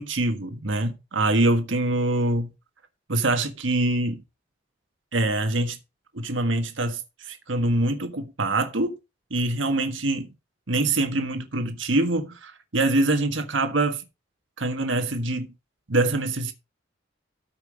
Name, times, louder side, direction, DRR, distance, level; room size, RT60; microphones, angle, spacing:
voice 1, 0.0-2.5 3.1-4.2 5.1-5.8 6.1-9.0 9.3-10.3 10.7-14.0 14.6-15.5 15.9-16.5, right 2 dB, 85° right, 1.6 m, -24 dB
14.0 x 5.7 x 5.0 m
head